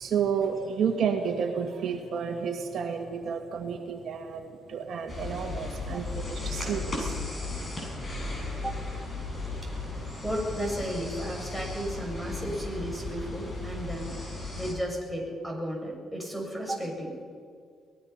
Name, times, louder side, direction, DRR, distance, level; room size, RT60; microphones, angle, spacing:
voice 1, 0.0-7.2, right 6 dB, 65° right, 4 dB, 1.8 m, -31 dB
sound 1, 5.1-14.7, left 2 dB, 30° left, 7.3 m, -35 dB
voice 2, 10.2-14.3 14.6-17.2, equal, 5° left, 0 dB, 7.0 m, -34 dB
23.5 x 19.5 x 5.9 m, 2.1 s
cardioid pair, 90°, 0 cm